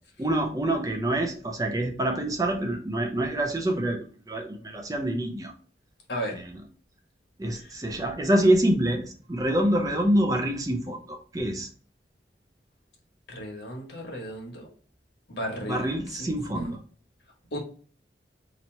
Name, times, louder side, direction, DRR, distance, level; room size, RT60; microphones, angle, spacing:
voice 1, 0.2-5.5 6.3-6.4 7.4-11.7 15.7-16.8, right 1 dB, 20° right, 0.5 m, -26 dB
voice 2, 6.1-6.4 7.5-7.8 13.3-14.7 15.3-16.7 17.5-17.6, equal, 70° left, 1.2 m, -35 dB
2.9 x 2.7 x 4.3 m
head